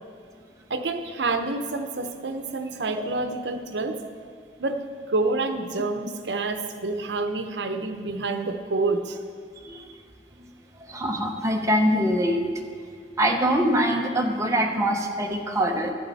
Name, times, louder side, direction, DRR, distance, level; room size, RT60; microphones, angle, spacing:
voice 1, 0.7-4.0 4.6-9.2, right 3 dB, 75° right, 7 dB, 0.8 m, -28 dB
voice 2, 10.9-12.4 13.2-15.9, equal, 20° right, 1 dB, 0.9 m, -23 dB
11.5 x 10.0 x 4.1 m, 2.1 s
head